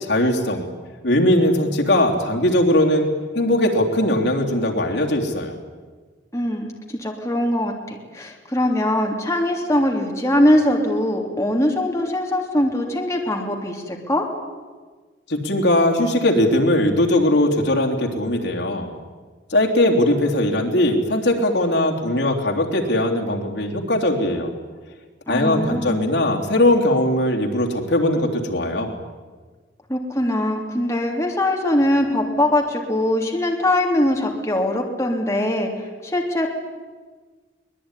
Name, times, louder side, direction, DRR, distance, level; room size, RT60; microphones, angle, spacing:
voice 1, 0.1-0.6 1.0-3.1 3.3-5.5 15.3-18.9 19.5-24.5 25.3-28.9, left 1 dB, 65° left, 1 dB, 3.3 m, -19 dB
voice 2, 6.3-6.7 7.0-14.3 25.3-26.0 29.9-35.7 36.0-36.5, left 1 dB, 15° left, 1 dB, 3.2 m, -21 dB
24.0 x 20.5 x 10.0 m, 1.4 s
head